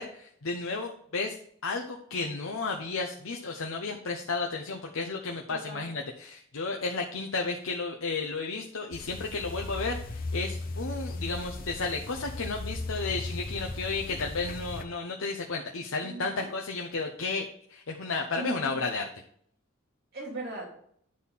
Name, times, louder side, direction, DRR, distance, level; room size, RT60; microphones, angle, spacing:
voice 1, 0.0-1.4 1.6-19.1, left 3 dB, 90° left, 2 dB, 0.9 m, -33 dB
voice 2, 5.5-5.9 16.0-16.5 18.4-18.9 20.1-20.7, right 2 dB, 50° right, -5 dB, 3.0 m, -39 dB
sound 1, 8.9-14.8, left 2 dB, 45° left, 0.7 m, -37 dB
10.5 x 4.2 x 5.6 m, 0.65 s
head